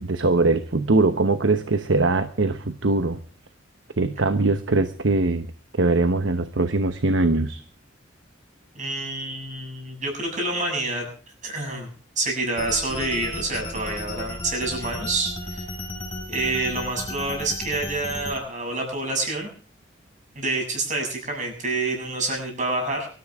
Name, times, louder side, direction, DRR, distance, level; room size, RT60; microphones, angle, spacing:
voice 1, 0.0-3.2 4.0-5.5 5.8-7.6, right 2 dB, 75° right, 9 dB, 1.0 m, -21 dB
voice 2, 8.7-11.1 11.4-11.9 12.2-15.6 16.3-19.5 20.4-23.1, right 2 dB, 40° right, 2 dB, 7.5 m, -27 dB
sound 1, 12.5-18.4, left 1 dB, 30° left, 5.8 m, -34 dB
24.5 x 13.5 x 3.6 m, 0.41 s
head